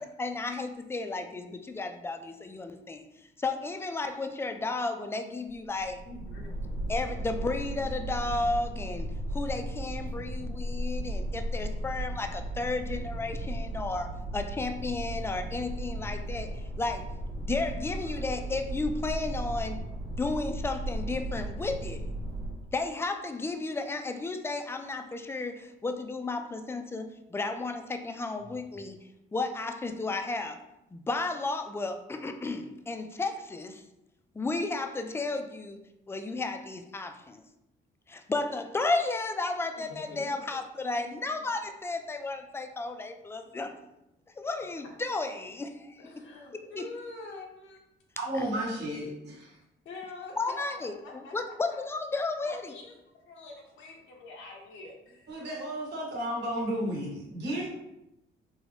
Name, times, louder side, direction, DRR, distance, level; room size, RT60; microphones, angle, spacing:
voice 1, 0.0-3.0 3.4-6.0 6.9-17.1 17.4-22.0 22.7-29.0 29.3-30.6 30.9-33.8 34.4-37.4 38.1-43.7 44.4-46.2 46.7-46.9 48.3-48.4 50.4-52.7, left 3 dB, 10° left, 7 dB, 0.3 m, -33 dB
sound 1, 5.5-22.8, right 1 dB, 85° right, 1.3 m, -35 dB
voice 2, 6.1-6.5 28.4-28.5 39.7-41.3 46.0-47.8 48.4-48.5 49.8-51.3 51.7-51.8 52.4-53.0 53.3-55.3, left 3 dB, 85° left, -1 dB, 0.7 m, -46 dB
voice 3, 48.2-49.5 55.3-57.7, right 1 dB, 60° right, -4 dB, 1.1 m, -33 dB
3.8 x 2.1 x 3.1 m, 0.89 s
cardioid pair, 90°, 20 cm